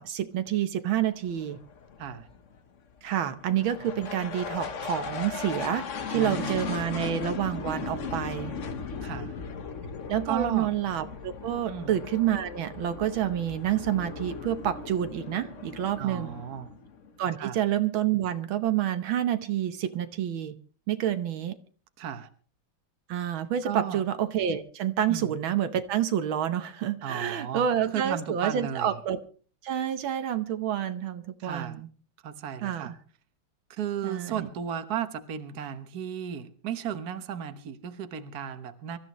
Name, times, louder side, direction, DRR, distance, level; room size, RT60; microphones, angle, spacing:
voice 1, 0.0-1.6 3.0-8.5 10.1-16.4 17.2-20.6 20.9-21.6 23.1-29.2 29.6-31.9 32.6-32.9 34.0-34.5, right 10 dB, 80° right, 10 dB, 1.7 m, -28 dB
sound 1, 1.2-17.2, left 5 dB, 45° left, 1.2 m, -37 dB
voice 2, 6.1-6.7 9.0-9.3 10.2-10.7 11.7-12.0 16.0-16.7 17.4-17.6 22.0-22.3 23.6-24.0 25.1-25.3 27.0-29.0 31.4-31.8 32.2-32.9 33.7-39.0, right 9 dB, 55° right, 9 dB, 1.5 m, -34 dB
25.5 x 13.5 x 3.1 m, 0.40 s
omnidirectional pair, 2.2 m